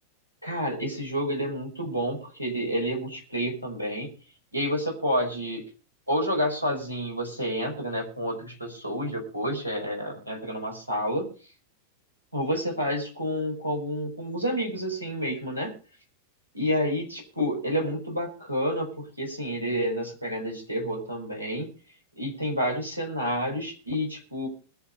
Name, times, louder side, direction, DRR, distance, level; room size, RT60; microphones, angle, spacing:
voice 1, 0.4-4.1 4.5-5.6 6.1-11.3 12.3-15.7 16.5-21.7 22.2-24.5, equal, 90° right, 2 dB, 5.3 m, -29 dB
21.0 x 7.2 x 5.4 m, 0.37 s
figure-of-eight pair, 90°, 0 cm